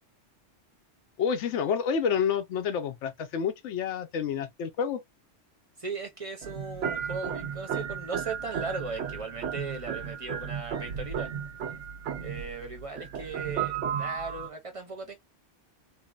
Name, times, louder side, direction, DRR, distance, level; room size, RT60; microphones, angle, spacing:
voice 1, 1.2-5.0, left 7 dB, 80° left, 0.9 m, -29 dB
voice 2, 5.8-11.3 12.2-15.2, right 3 dB, 35° right, 0.6 m, -37 dB
sound 1, 6.4-14.5, right 8 dB, 90° right, 0.9 m, -34 dB
3.6 x 2.1 x 2.3 m
omnidirectional pair, 1.2 m